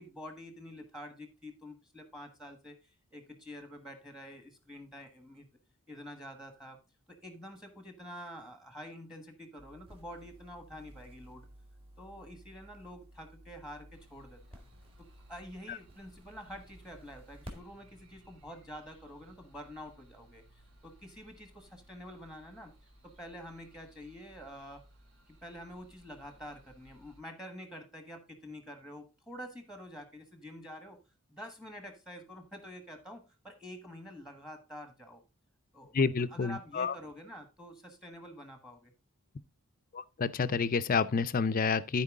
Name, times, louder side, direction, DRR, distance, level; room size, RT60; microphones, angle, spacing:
voice 1, 0.0-5.5 5.9-6.8 7.1-11.5 12.0-14.6 15.0-20.4 20.8-22.7 23.0-24.8 25.3-31.0 31.3-35.2 35.7-36.0 36.3-38.9, equal, 5° right, 1.3 m, -47 dB
sound 1, 9.6-17.6, equal, 25° right, 2.1 m, -53 dB
sound 2, 13.9-27.2, right 1 dB, 60° right, 3.4 m, -60 dB
voice 2, 35.9-36.9 39.9-42.0, left 5 dB, 40° left, 0.5 m, -29 dB
13.5 x 4.6 x 3.6 m
head